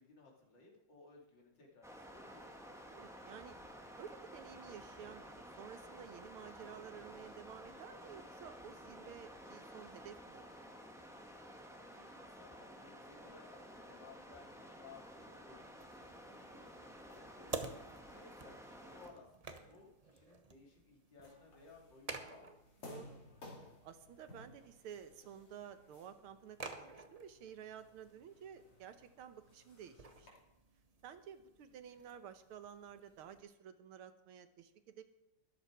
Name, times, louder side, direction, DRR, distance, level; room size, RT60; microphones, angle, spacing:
voice 1, 0.0-2.5 11.9-22.6, left 4 dB, 55° left, -2 dB, 3.4 m, -60 dB
sound 1, 1.8-19.1, equal, ahead, 1.2 m, -53 dB
voice 2, 2.9-3.5 4.0-10.5 17.5-18.1 22.8-23.2 23.8-30.3 31.0-35.0, right 8 dB, 80° right, 10 dB, 1.9 m, -53 dB
sound 2, 15.8-33.4, right 3 dB, 55° right, 0.4 m, -52 dB
sound 3, 21.2-30.3, left 2 dB, 85° left, 3.9 m, -58 dB
13.5 x 11.0 x 4.7 m, 0.88 s
omnidirectional pair, 2.4 m